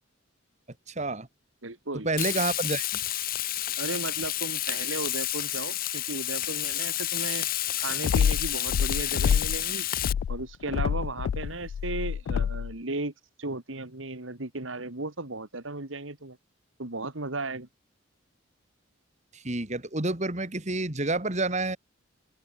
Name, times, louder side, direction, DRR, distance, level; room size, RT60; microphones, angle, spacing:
voice 1, 0.9-1.3 2.0-3.0 19.3-21.8, right 2 dB, 35° right, 2.3 m, -29 dB
voice 2, 1.6-2.1 3.8-7.5 7.8-9.9 10.3-13.1 13.4-16.4 16.8-17.7, right 2 dB, 80° right, 2.5 m, -35 dB
Frying (food), 2.2-10.1, left 14 dB, 45° left, 0.9 m, -30 dB
sound 1, 8.0-9.6 10.0-12.7, left 7 dB, 80° left, 0.3 m, -27 dB
open air
head